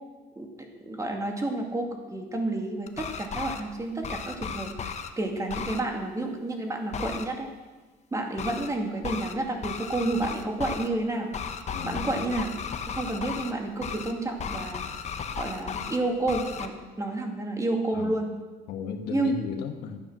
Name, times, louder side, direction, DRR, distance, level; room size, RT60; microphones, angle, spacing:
voice 1, 0.8-7.5 8.1-11.3 11.8-12.5 12.9-14.9 15.4-18.3 19.1-19.4, right 2 dB, 20° right, 3 dB, 2.2 m, -30 dB
sound 1, 2.9-3.6 4.0-5.1 5.5-5.8 6.9-7.2 8.4-8.7 9.0-9.3 9.6-10.9 11.3-13.5 13.8-14.1 14.4-16.0 16.3-16.7, left 6 dB, 40° left, 1.0 m, -35 dB
voice 2, 11.7-12.3 17.9-18.2 18.7-20.0, left 6 dB, 80° left, 5 dB, 1.3 m, -35 dB
13.0 x 9.1 x 6.2 m, 1.3 s
cardioid pair, 110°, 17 cm